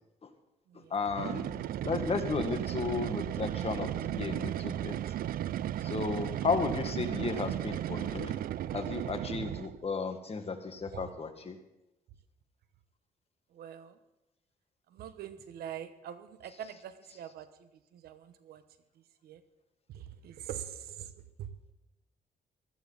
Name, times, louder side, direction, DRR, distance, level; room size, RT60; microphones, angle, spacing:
voice 1, 0.7-5.1 5.8-8.4 8.7-11.6, left 4 dB, 40° left, 6 dB, 1.7 m, -34 dB
sound 1, 1.1-9.8, right 12 dB, 70° right, 0.4 m, -35 dB
voice 2, 13.5-14.0 14.9-18.6 19.2-19.4 19.9-21.1 21.4-21.5, right 10 dB, 85° right, 12 dB, 1.0 m, -44 dB
15.5 x 14.0 x 4.0 m, 0.95 s
cardioid pair, 80°, 16 cm